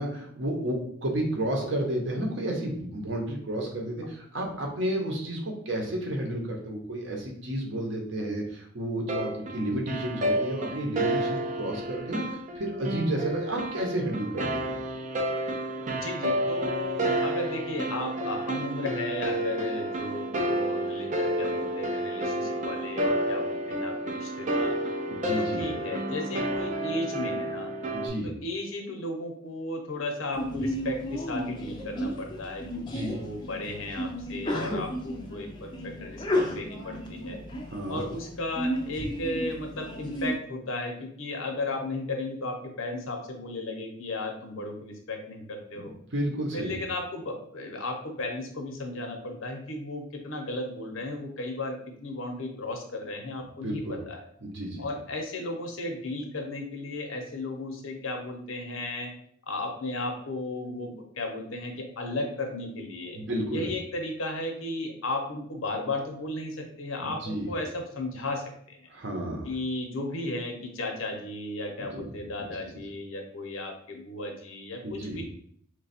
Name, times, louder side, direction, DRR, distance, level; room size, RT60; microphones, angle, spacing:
voice 1, 0.0-14.8 25.1-25.6 27.9-28.3 32.8-33.2 37.7-38.0 46.1-46.7 53.6-53.9 54.4-54.8 63.1-63.7 67.0-67.5 68.9-69.5 71.9-72.1 72.4-72.5 74.8-75.2, right 1 dB, 60° right, 1 dB, 0.8 m, -31 dB
sound 1, 9.1-28.1, right 1 dB, 35° right, 0.4 m, -30 dB
voice 2, 15.9-24.8 25.2-27.7 28.2-37.4 37.9-45.9 46.5-54.2 54.8-59.1 59.5-63.2 63.5-68.9 69.4-75.2, left 2 dB, 75° left, 3 dB, 0.8 m, -35 dB
Sneeze, 30.3-40.3, equal, 20° left, 0.4 m, -33 dB
3.2 x 2.3 x 4.2 m, 0.64 s
head